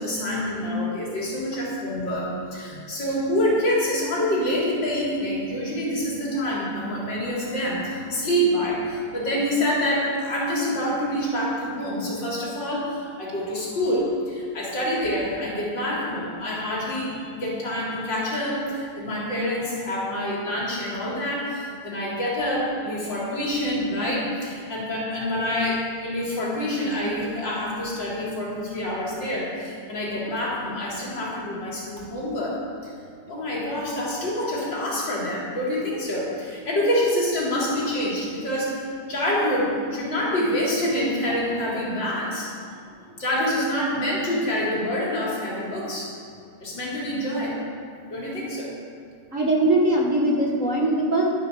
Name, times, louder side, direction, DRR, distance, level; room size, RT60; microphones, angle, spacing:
voice 1, 0.0-32.9 33.3-42.5 43.2-46.1 46.6-47.6 48.0-48.7, left 1 dB, 60° left, -5 dB, 3.8 m, -26 dB
voice 2, 49.3-51.2, right 1 dB, 40° right, -2 dB, 1.6 m, -21 dB
11.5 x 10.5 x 6.5 m, 2.4 s
omnidirectional pair, 2.3 m